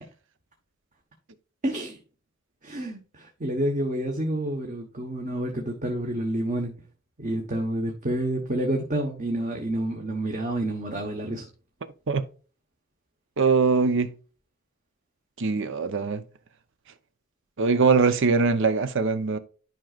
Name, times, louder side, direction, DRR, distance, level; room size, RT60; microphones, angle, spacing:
voice 1, 1.6-2.0 2.6-6.7 7.2-11.4, right 1 dB, 35° right, 1.2 m, -29 dB
voice 2, 13.4-14.1 15.4-16.2 17.6-19.4, right 4 dB, 65° right, 0.7 m, -22 dB
11.0 x 5.1 x 2.4 m
head